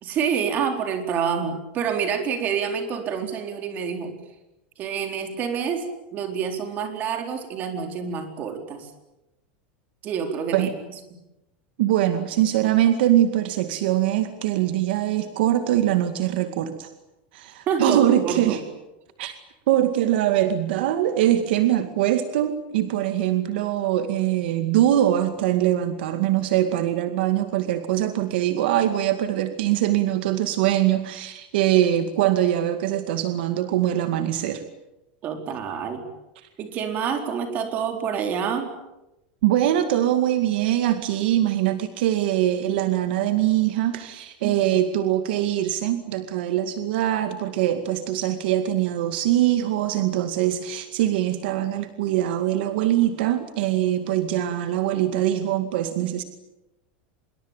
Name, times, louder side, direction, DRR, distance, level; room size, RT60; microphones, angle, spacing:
voice 1, 0.0-4.1 4.8-8.9 10.0-10.7 17.7-18.6 35.2-36.0 36.6-38.7 44.4-44.8, right 7 dB, 30° right, 5 dB, 4.2 m, -27 dB
voice 2, 11.8-16.9 17.3-18.6 19.2-19.3 19.7-34.6 39.4-56.2, right 12 dB, 65° right, 8 dB, 2.1 m, -22 dB
26.0 x 22.5 x 9.1 m, 0.94 s
supercardioid pair, 165°, 6 cm